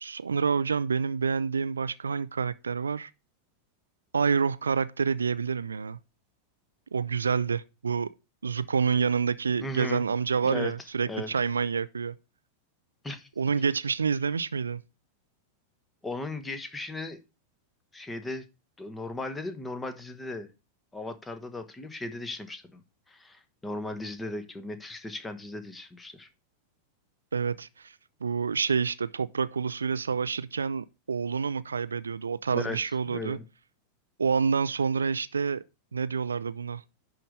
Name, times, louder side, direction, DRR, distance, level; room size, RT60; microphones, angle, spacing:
voice 1, 0.0-3.1 4.1-6.0 6.9-8.1 8.4-12.1 13.4-14.8 27.3-27.9 28.2-33.4 34.2-35.6 35.9-36.8, right 5 dB, 75° right, 0.4 m, -28 dB
voice 2, 9.6-10.0 10.4-10.7 11.1-11.3 13.0-13.3 16.0-17.2 17.9-18.4 18.8-20.5 20.9-22.8 23.1-26.3 32.5-32.8 33.1-33.4, left 2 dB, 10° left, 1.4 m, -37 dB
11.0 x 3.9 x 6.6 m
figure-of-eight pair, 90°, 0 cm